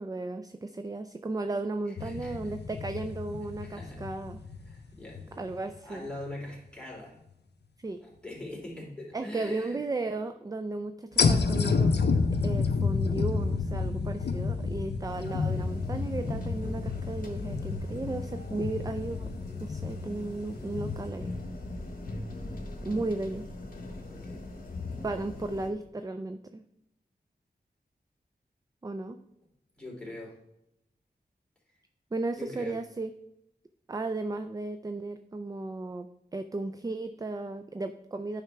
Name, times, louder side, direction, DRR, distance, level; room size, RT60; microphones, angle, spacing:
voice 1, 0.0-4.4 5.4-6.1 7.8-8.0 9.1-11.9 12.4-19.3 19.6-21.3 22.8-23.5 25.0-26.6 28.8-29.2 32.1-33.1 33.9-38.4, right 2 dB, 20° right, 8 dB, 0.3 m, -35 dB
sound 1, 2.0-5.7 6.2-6.3 11.2-21.1, left 4 dB, 80° left, 0.5 m, -30 dB
voice 2, 2.0-2.5 3.6-4.0 4.6-7.1 8.0-9.8 24.0-24.5 29.8-30.3 32.4-32.8, left 1 dB, 5° left, -5 dB, 3.0 m, -43 dB
sound 2, 15.1-25.7, left 2 dB, 55° left, 1.3 m, -40 dB
9.1 x 5.7 x 3.4 m, 0.82 s
wide cardioid pair, 70°, 17 cm